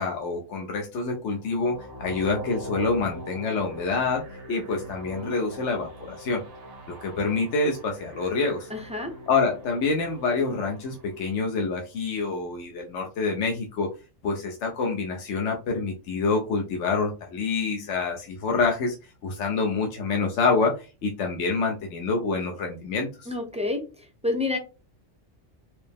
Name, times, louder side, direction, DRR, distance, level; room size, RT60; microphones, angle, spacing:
voice 1, 0.0-6.4 6.9-8.7 9.3-13.9 14.2-19.0 19.2-23.3, left 4 dB, 75° left, 1 dB, 1.0 m, -27 dB
sound 1, 1.3-11.4, equal, 55° right, 1.0 m, -42 dB
voice 2, 8.7-9.1 23.3-24.6, left 2 dB, 10° right, 3 dB, 0.4 m, -29 dB
4.5 x 2.0 x 3.4 m, 0.30 s
omnidirectional pair, 1.2 m